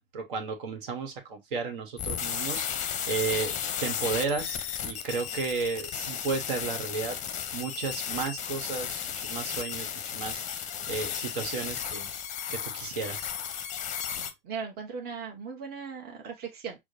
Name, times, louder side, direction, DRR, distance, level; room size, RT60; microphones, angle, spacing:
voice 1, 0.0-7.2 7.5-10.4 10.9-12.1 12.5-13.3, right 4 dB, 60° right, 1.3 m, -33 dB
sound 1, 2.0-14.3, left 8 dB, 25° left, 0.7 m, -34 dB
voice 2, 14.1-16.8, right 6 dB, 30° right, 1.0 m, -38 dB
6.2 x 2.1 x 2.7 m
figure-of-eight pair, 90°, 29 cm